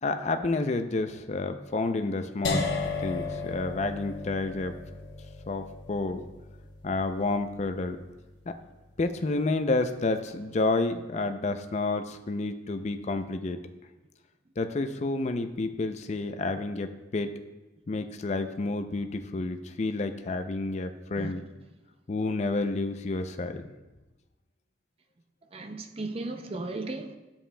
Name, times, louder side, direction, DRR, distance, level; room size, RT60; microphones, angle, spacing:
voice 1, 0.0-2.6 3.0-4.7 5.5-6.2 6.8-8.0 8.5-8.6 9.0-13.6 14.6-17.3 17.9-21.4 22.1-23.7, left 3 dB, 40° left, 0.4 m, -30 dB
sound 1, 2.4-8.4, left 3 dB, 70° left, 0.9 m, -35 dB
voice 2, 21.2-21.5 25.5-27.2, right 2 dB, 30° right, 0.5 m, -36 dB
11.0 x 7.2 x 2.2 m
head